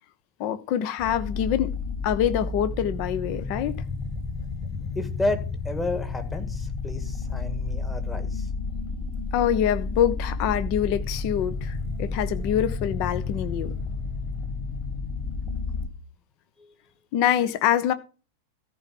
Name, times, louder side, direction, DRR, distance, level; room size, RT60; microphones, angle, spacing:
voice 1, 0.4-1.7 2.0-3.8 9.3-13.7 17.1-17.9, left 10 dB, 45° left, 1.0 m, -25 dB
sound 1, 1.0-15.9, left 4 dB, 25° left, 3.6 m, -31 dB
voice 2, 5.0-8.5, left 2 dB, 10° left, 1.7 m, -31 dB
14.0 x 4.7 x 5.9 m
figure-of-eight pair, 90°, 0 cm